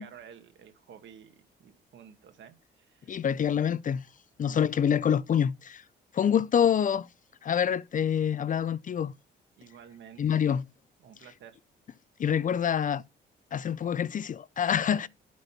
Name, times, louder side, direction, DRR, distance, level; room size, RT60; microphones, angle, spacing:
voice 1, 0.0-3.2 4.4-4.6 9.6-10.6 11.0-11.6 14.8-15.1, right 8 dB, 70° right, 2.0 m, -51 dB
voice 2, 3.1-4.0 4.4-5.8 6.1-7.1 7.4-9.1 10.2-10.6 12.2-13.0 13.5-15.1, left 8 dB, 40° left, 0.5 m, -26 dB
11.5 x 5.3 x 5.9 m
cardioid pair, 90°, 20 cm